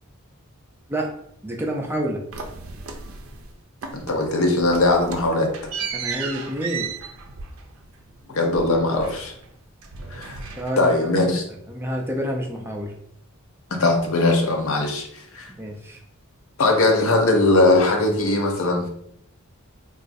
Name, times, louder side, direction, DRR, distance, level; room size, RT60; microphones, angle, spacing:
voice 1, 1.4-2.2 5.9-6.9 10.6-11.2 11.7-12.9 15.6-16.0, equal, 10° right, 0 dB, 0.4 m, -28 dB
sound 1, 2.3-3.5 3.8-4.3 4.6-9.5 9.8-11.1, right 5 dB, 70° right, 0.4 m, -35 dB
voice 2, 3.9-5.5 8.3-9.3 10.1-10.3 10.8-11.4 13.7-15.1 15.3-15.5 16.6-18.9, left 2 dB, 70° left, 2 dB, 0.6 m, -20 dB
4.0 x 2.3 x 2.6 m, 0.70 s
head